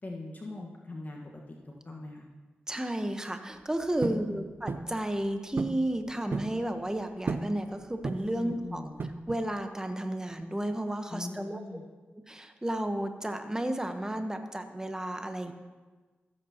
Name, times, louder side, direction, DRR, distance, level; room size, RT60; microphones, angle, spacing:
voice 1, 0.0-2.3 4.0-4.4 8.3-9.0 11.1-11.8, left 2 dB, 40° left, -1 dB, 1.4 m, -41 dB
voice 2, 2.7-8.8 9.3-11.6 12.3-15.5, right 1 dB, 15° right, 6 dB, 1.0 m, -32 dB
sound 1, 4.0-4.3 4.7-4.9 5.6-5.8 6.1-6.6 7.3-7.6 8.0-8.4 9.0-9.5, right 3 dB, 55° right, 0.5 m, -34 dB
15.5 x 8.2 x 2.9 m, 1.3 s
cardioid pair, 45°, 4 cm